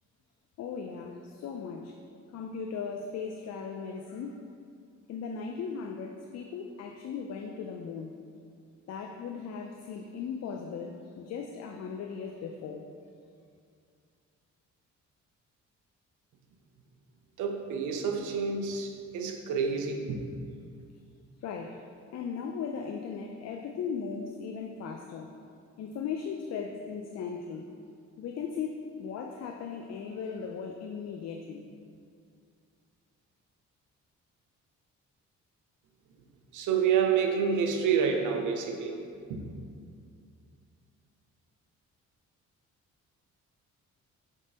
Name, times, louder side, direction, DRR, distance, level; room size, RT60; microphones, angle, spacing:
voice 1, 0.6-2.0 2.3-4.4 5.1-8.1 8.9-12.8 21.4-21.8 22.1-25.3 25.8-27.7 28.2-31.7, left 6 dB, 60° left, 3 dB, 0.5 m, -37 dB
voice 2, 17.4-20.2 36.5-39.0 39.3-39.4, right 6 dB, 80° right, 3 dB, 0.7 m, -28 dB
4.7 x 3.7 x 5.3 m, 2.3 s
cardioid pair, 90°, 30 cm